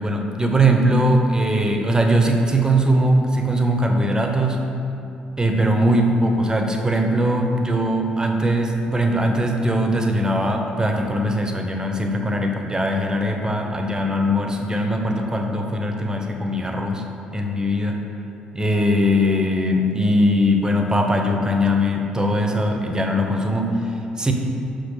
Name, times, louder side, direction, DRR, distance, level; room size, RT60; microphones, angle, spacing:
voice 1, 0.0-4.6 5.4-17.0 17.3-18.0 18.5-24.3, equal, 15° right, 3 dB, 0.9 m, -20 dB
5.7 x 5.1 x 4.9 m, 2.7 s
figure-of-eight pair, 45°, 4 cm